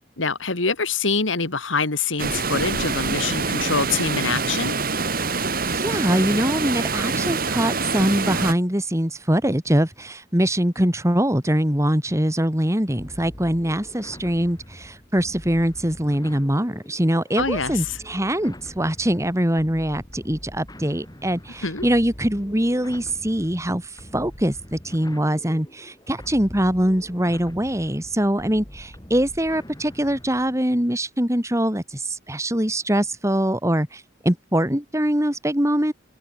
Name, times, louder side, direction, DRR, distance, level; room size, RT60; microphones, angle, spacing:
voice 1, 0.2-4.8 17.4-18.0 21.6-21.9, left 4 dB, 90° left, 3.1 m, -25 dB
Water, 2.2-8.5, right 4 dB, 50° right, 4.8 m, -25 dB
voice 2, 5.6-35.9, right 1 dB, 15° right, 3.2 m, -23 dB
sound 1, 13.0-30.6, equal, 20° left, 7.5 m, -43 dB
head